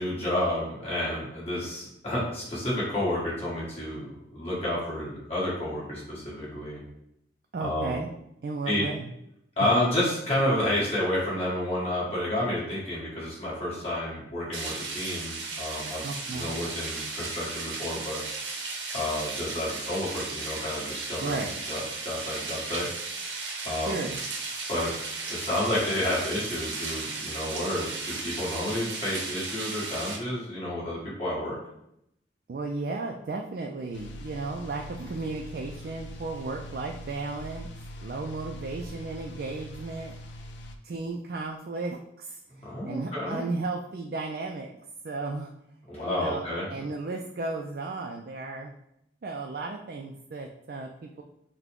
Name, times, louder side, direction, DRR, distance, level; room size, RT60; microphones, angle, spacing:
voice 1, 0.0-6.8 7.6-8.0 8.6-8.9 9.6-18.2 18.9-21.3 21.6-22.9 23.6-24.0 24.7-24.9 25.3-31.6 42.6-43.5 45.9-46.7, left 1 dB, 35° left, -7 dB, 1.7 m, -30 dB
voice 2, 7.5-8.1 8.4-9.1 9.6-9.7 16.0-16.5 21.2-21.5 23.8-24.2 32.5-37.7 38.0-40.1 40.8-44.8 45.0-45.5 46.0-48.7 49.2-51.2, right 3 dB, 55° right, 2 dB, 0.3 m, -34 dB
sound 1, 14.5-30.2, right 3 dB, 80° right, 0.8 m, -35 dB
sound 2, 33.9-40.8, equal, 85° left, 0.5 m, -42 dB
5.8 x 2.2 x 3.6 m, 0.78 s
head